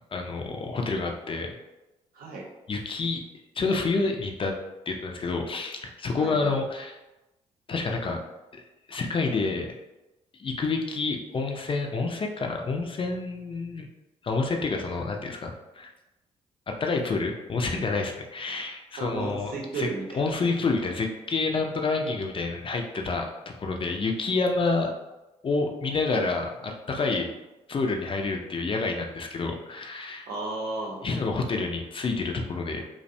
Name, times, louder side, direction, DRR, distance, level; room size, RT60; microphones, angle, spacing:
voice 1, 0.1-1.5 2.7-3.2 3.6-4.6 4.9-7.0 7.7-8.2 8.5-8.6 8.9-9.7 10.4-13.9 14.2-15.9 16.7-19.9 20.1-24.9 25.4-27.3 27.7-30.3 31.0-32.8, left 3 dB, 35° left, 2 dB, 0.4 m, -28 dB
voice 2, 2.1-2.5 6.2-6.5 19.0-20.5 30.3-31.0, right 3 dB, 65° right, -1 dB, 0.6 m, -34 dB
2.5 x 2.1 x 2.6 m, 1.0 s
hypercardioid pair, 45°, 16 cm